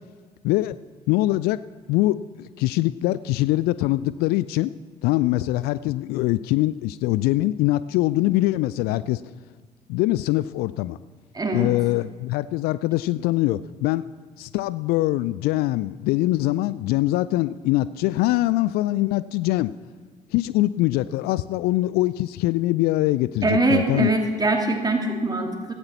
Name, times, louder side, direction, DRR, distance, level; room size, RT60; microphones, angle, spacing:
voice 1, 1.1-1.6 1.9-4.7 5.0-9.2 9.9-11.0 11.5-14.0 14.4-19.7 20.3-24.1, left 17 dB, 50° left, 17 dB, 0.4 m, -23 dB
voice 2, 11.3-11.7 23.4-25.7, right 2 dB, 20° right, 3 dB, 2.4 m, -23 dB
16.5 x 14.5 x 4.2 m, 1.4 s
figure-of-eight pair, 50°, 20 cm